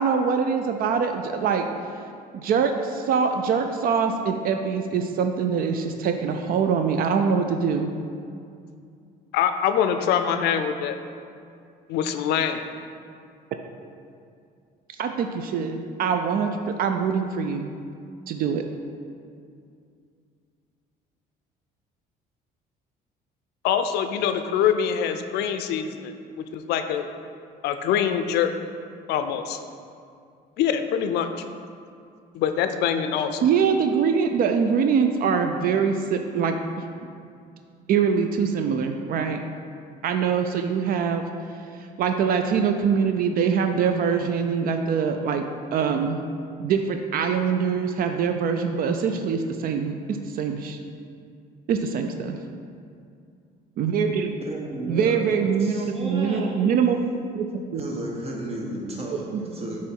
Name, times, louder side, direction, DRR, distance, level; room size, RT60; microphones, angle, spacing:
voice 1, 0.0-1.7 2.3-7.9 15.0-17.7 18.3-18.6 33.4-36.8 37.9-39.4 40.0-41.3 42.0-46.2 46.6-50.8 51.7-52.4 53.8-54.3 54.9-57.0 57.4-57.5 57.7-57.8 59.1-59.4, right 6 dB, 60° right, 6 dB, 0.4 m, -24 dB
voice 2, 9.3-11.0 11.9-12.6 23.6-27.0 27.6-28.5 29.1-29.6 30.6-31.3 32.3-33.4, left 8 dB, 80° left, 8 dB, 0.4 m, -24 dB
voice 3, 54.4-57.0 57.8-59.8, right 1 dB, 35° right, -1 dB, 1.1 m, -33 dB
6.9 x 3.1 x 4.5 m, 2.4 s
cardioid pair, 110°, 17 cm